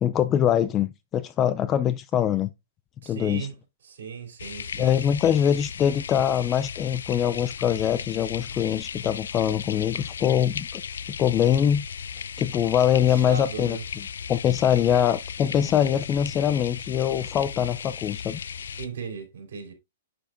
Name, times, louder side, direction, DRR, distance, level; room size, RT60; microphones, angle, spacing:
voice 1, 0.0-2.5 3.1-3.5 4.8-10.8 11.1-11.9 12.4-13.8 14.3-18.4, left 9 dB, 20° left, 0.4 m, -23 dB
voice 2, 3.0-3.6 3.8-4.9 13.1-13.8 18.8-19.7, right 6 dB, 70° right, 3.6 m, -37 dB
sound 1, 4.4-18.9, left 7 dB, 90° left, 0.4 m, -36 dB
7.6 x 6.3 x 2.5 m
hypercardioid pair, 155°, 0 cm